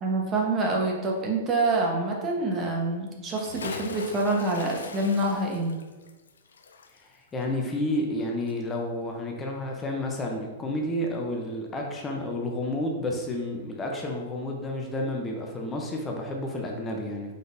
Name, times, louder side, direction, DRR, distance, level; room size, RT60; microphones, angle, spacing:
voice 1, 0.0-5.7, right 2 dB, 30° right, -1 dB, 1.1 m, -26 dB
Bathtub (filling or washing) / Splash splatter, 3.2-8.2 8.5-8.6, left 4 dB, 80° left, 0.4 m, -42 dB
voice 2, 7.0-17.4, left 1 dB, 20° left, 0 dB, 0.7 m, -31 dB
5.1 x 3.8 x 2.7 m, 1.3 s
hypercardioid pair, 110°, 0 cm